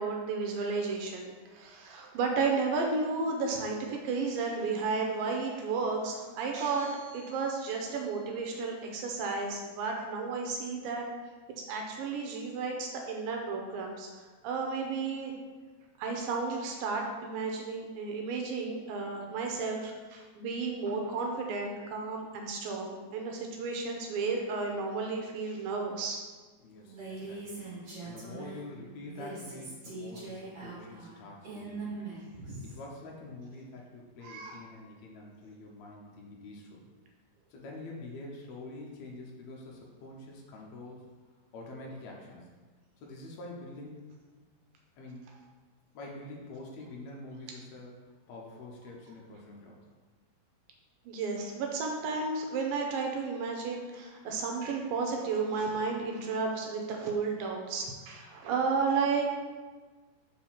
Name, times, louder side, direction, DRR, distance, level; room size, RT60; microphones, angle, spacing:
voice 1, 0.0-11.0 11.7-15.3 16.0-26.2 32.3-32.6 34.2-34.6 51.1-59.4, right 4 dB, 80° right, 1 dB, 2.3 m, -33 dB
voice 2, 26.6-32.1 32.6-36.9 37.5-41.1 41.5-42.5 43.0-44.0 45.0-45.3 45.9-49.8, left 2 dB, 80° left, -2 dB, 1.5 m, -46 dB
Female speech woman speaking, 26.8-28.7 29.0-32.8, right 3 dB, 40° right, 2.2 m, -42 dB
5.5 x 4.4 x 5.6 m, 1.4 s
omnidirectional pair, 4.3 m